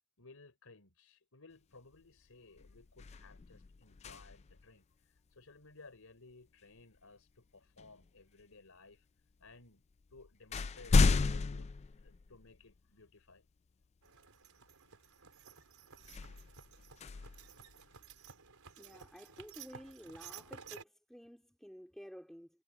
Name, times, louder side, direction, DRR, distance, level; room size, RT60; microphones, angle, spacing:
voice 1, 0.2-9.1 9.4-9.8 10.1-11.0 11.3-11.7 12.0-13.4, left 3 dB, 80° left, 4.0 m, -59 dB
sound 1, 1.9-2.2 2.6-4.6 6.8-7.0 7.8-8.5 9.4-9.5 9.9-12.8 13.3-13.4 16.0-18.2, left 4 dB, 30° left, 0.4 m, -33 dB
sound 2, 14.0-20.8, right 7 dB, 90° right, 4.2 m, -54 dB
voice 2, 18.8-22.5, equal, ahead, 3.4 m, -52 dB
head